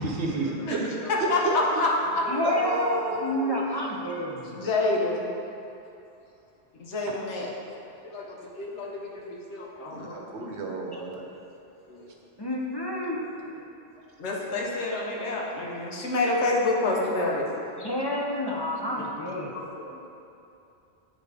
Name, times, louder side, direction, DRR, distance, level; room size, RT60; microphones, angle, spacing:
voice 1, 0.0-1.6 2.4-3.6 7.1-7.2 9.9-11.3, right 3 dB, 75° right, 0 dB, 1.1 m, -31 dB
voice 2, 0.7-2.6 4.5-5.3 6.8-7.5 8.0-10.6 11.9-12.1 14.2-17.4 18.9-19.0 19.5-20.0, left 2 dB, 80° left, -3 dB, 1.2 m, -28 dB
voice 3, 2.3-4.5 12.4-13.2 17.8-19.5, left 1 dB, 30° left, -3 dB, 0.5 m, -29 dB
8.8 x 4.0 x 3.4 m, 2.7 s
omnidirectional pair, 1.2 m